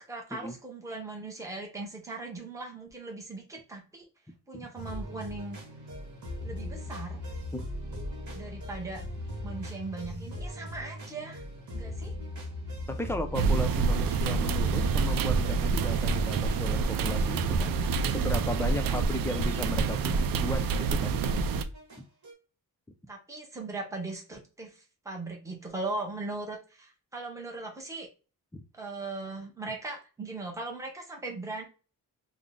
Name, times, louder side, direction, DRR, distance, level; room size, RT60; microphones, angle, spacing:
voice 1, 0.1-4.0 4.5-5.6 6.4-7.2 8.3-9.0 9.4-11.4 11.7-12.1 18.8-19.0 23.1-28.1 28.7-31.6, right 3 dB, 10° right, 1 dB, 0.8 m, -39 dB
sound 1, 4.8-22.3, left 1 dB, 55° right, 1.6 m, -40 dB
voice 2, 12.9-17.7 18.1-20.1 20.4-21.1 28.5-28.6, left 1 dB, 5° left, 6 dB, 0.4 m, -35 dB
sound 2, 13.3-21.6, right 5 dB, 70° right, 0.5 m, -27 dB
3.7 x 2.1 x 3.6 m, 0.33 s
wide cardioid pair, 145°, 35 cm